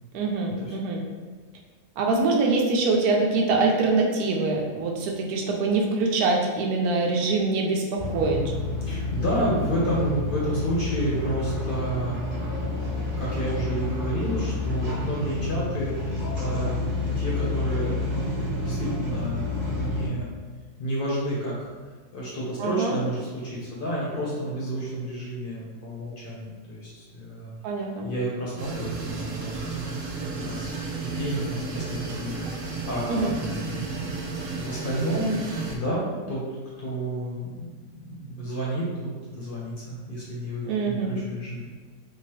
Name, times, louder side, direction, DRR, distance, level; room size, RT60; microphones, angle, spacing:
voice 1, 0.1-1.0 2.0-8.4 22.6-23.0 27.6-28.1 33.1-33.3 40.6-41.1, right 3 dB, 90° right, 1 dB, 1.1 m, -24 dB
sound 1, 8.0-20.1, left 2 dB, 10° right, 1.1 m, -29 dB
voice 2, 8.8-16.8 17.2-20.3 20.8-21.7 22.1-27.5 28.0-30.0 30.4-32.4 32.8-36.5 36.8-37.8 38.0-41.7, right 1 dB, 45° left, -5 dB, 0.9 m, -31 dB
sound 2, 28.6-35.8, right 4 dB, 70° right, 0.9 m, -33 dB
3.6 x 2.8 x 3.0 m, 1.5 s
omnidirectional pair, 1.5 m